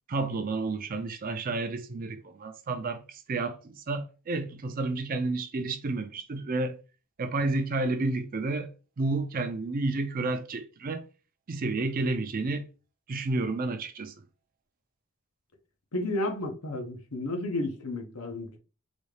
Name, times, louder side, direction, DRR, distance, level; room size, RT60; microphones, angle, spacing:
voice 1, 0.1-6.8 7.2-8.7 9.0-11.0 11.5-12.7 13.1-14.1, right 3 dB, 40° right, 0.4 m, -30 dB
voice 2, 15.9-18.6, left 2 dB, 85° left, 0.8 m, -32 dB
4.0 x 2.4 x 3.2 m
head